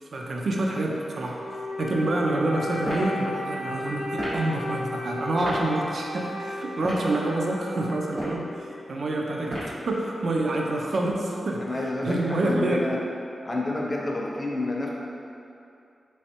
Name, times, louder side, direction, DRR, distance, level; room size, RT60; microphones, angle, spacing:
voice 1, 0.0-1.4 1.8-11.6 12.0-12.9, right 2 dB, 60° right, -1 dB, 0.3 m, -27 dB
Wind instrument woodwind instrument, 1.4-8.9, left 1 dB, 75° left, 0.6 m, -35 dB
sound 1, 2.8-3.1 4.1-4.4 5.4-5.6 6.7-7.1 8.0-8.4 9.5-9.8, equal, 75° right, 1.2 m, -32 dB
voice 2, 11.6-13.0 13.4-14.9, left 2 dB, 20° left, -3 dB, 0.5 m, -29 dB
3.5 x 3.1 x 2.8 m, 2.6 s
wide cardioid pair, 145°, 0 cm